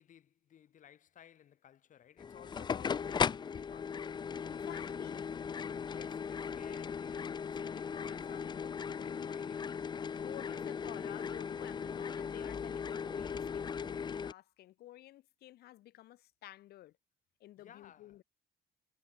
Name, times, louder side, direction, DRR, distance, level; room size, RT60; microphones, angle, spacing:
voice 1, 0.0-4.1 5.9-9.7 10.5-10.7 17.6-18.1, left 10 dB, 50° left, 1.5 m, -57 dB
sound 1, 2.2-14.3, left 6 dB, 25° left, 0.5 m, -38 dB
voice 2, 4.5-5.3 10.1-16.9 17.4-18.2, left 15 dB, 70° left, 1.7 m, -52 dB
cardioid pair, 110°, 17 cm